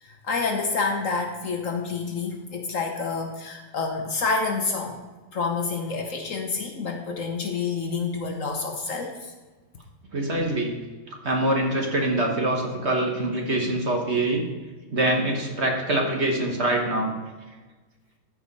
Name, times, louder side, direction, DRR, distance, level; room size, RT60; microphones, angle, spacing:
voice 1, 0.0-5.0 5.3-9.3, left 4 dB, 55° left, 3 dB, 1.1 m, -28 dB
voice 2, 10.1-10.8 11.2-14.4 14.9-17.1, right 1 dB, 45° right, 1 dB, 1.3 m, -24 dB
14.0 x 4.8 x 4.1 m, 1.3 s
omnidirectional pair, 1.8 m